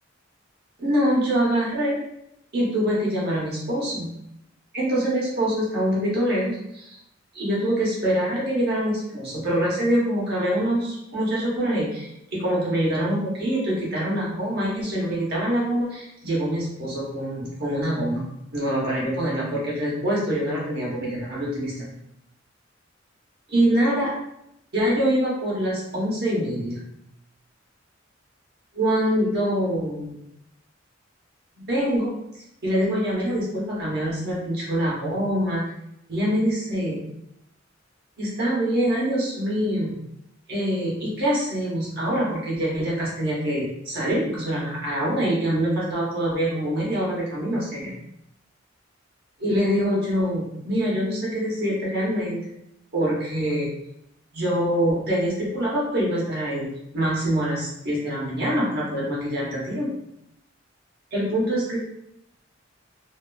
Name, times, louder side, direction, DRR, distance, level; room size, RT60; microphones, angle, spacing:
voice 1, 0.8-2.0 2.5-4.1 4.7-7.0 7.3-21.9 23.5-24.1 24.7-26.8 28.7-30.2 31.6-32.2 32.6-35.7 36.1-37.0 38.2-40.0 40.5-47.9 49.4-52.4 52.9-53.7 54.3-56.7 56.9-59.9 61.1-61.8, equal, 55° right, -5 dB, 1.0 m, -25 dB
2.7 x 2.5 x 2.2 m, 0.81 s
head